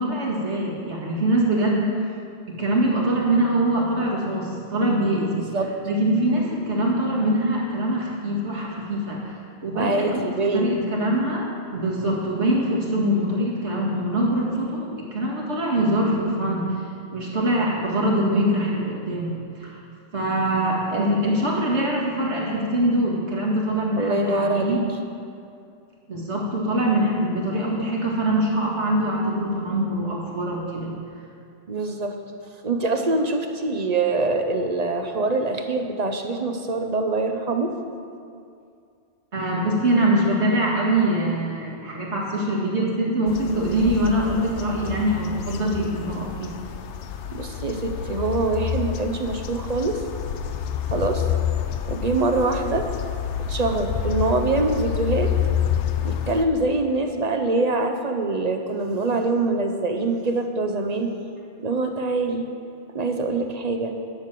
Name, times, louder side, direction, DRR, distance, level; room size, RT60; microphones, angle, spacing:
voice 1, 0.0-1.9 2.5-5.5 5.8-10.3 10.5-16.7 17.1-19.8 20.1-24.8 26.1-30.9 39.3-46.5, right 1 dB, 80° right, -3 dB, 2.3 m, -23 dB
voice 2, 9.7-10.8 20.9-21.1 24.0-24.8 31.7-32.2 32.6-37.8 47.3-50.0 50.9-51.3 51.9-52.9 53.4-55.3 56.0-61.1 61.6-62.5 62.9-63.9, right 3 dB, 40° right, 5 dB, 0.7 m, -24 dB
sound 1, 43.3-56.5, left 9 dB, 80° left, 0.9 m, -28 dB
10.5 x 6.3 x 7.6 m, 2.4 s
omnidirectional pair, 1.2 m